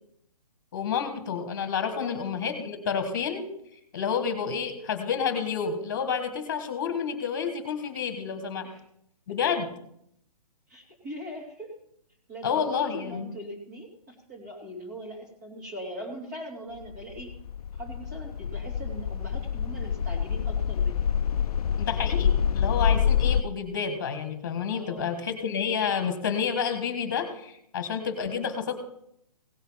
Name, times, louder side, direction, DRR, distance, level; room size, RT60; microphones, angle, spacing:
voice 1, 0.7-3.4 3.9-8.6 9.3-9.7 12.4-13.3 21.8-28.7, left 6 dB, 30° left, 8 dB, 1.6 m, -29 dB
voice 2, 10.7-11.8 12.3-17.3 17.7-21.2 24.7-25.1, equal, 25° right, 0 dB, 2.6 m, -41 dB
sound 1, 16.8-23.4, left 8 dB, 70° left, 0.4 m, -26 dB
17.0 x 7.2 x 5.7 m, 0.73 s
hypercardioid pair, 175°, 20 cm